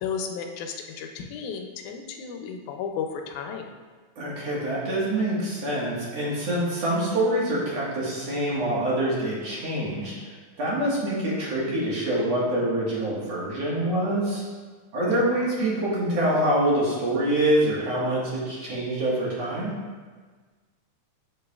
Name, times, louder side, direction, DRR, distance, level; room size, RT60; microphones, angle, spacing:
voice 1, 0.0-3.7 15.0-15.2, left 6 dB, 85° left, 4 dB, 2.1 m, -33 dB
voice 2, 4.2-14.4 14.9-19.7, right 1 dB, 60° right, -6 dB, 2.6 m, -25 dB
8.0 x 7.4 x 2.4 m, 1.4 s
omnidirectional pair, 3.4 m